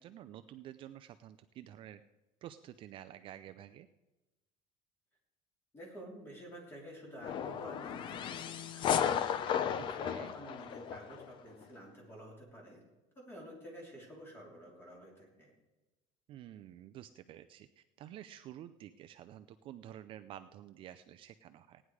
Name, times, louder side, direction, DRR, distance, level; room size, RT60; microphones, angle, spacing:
voice 1, 0.0-2.0 2.4-3.9 9.8-10.3 16.3-21.8, right 12 dB, 40° right, 10 dB, 0.4 m, -50 dB
voice 2, 5.7-9.3 9.8-12.8 13.1-15.5, right 1 dB, 15° left, -1 dB, 3.3 m, -50 dB
sound 1, 7.2-11.3, left 8 dB, 35° left, 0.6 m, -34 dB
17.0 x 9.9 x 4.8 m, 1.1 s
cardioid pair, 175°, 14 cm